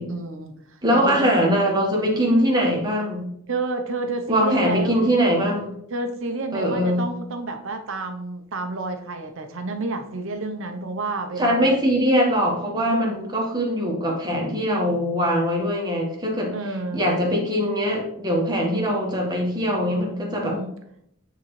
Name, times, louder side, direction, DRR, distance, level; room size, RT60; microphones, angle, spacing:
voice 1, 0.1-1.3 3.5-5.0 5.9-11.7 12.7-13.2 16.5-17.0 18.6-18.9 20.4-20.7, right 3 dB, 65° right, 6 dB, 0.8 m, -30 dB
voice 2, 0.8-3.3 4.3-5.7 6.5-7.0 11.4-16.5 16.9-20.5, equal, 20° right, -1 dB, 1.4 m, -22 dB
8.4 x 3.8 x 3.2 m, 0.74 s
head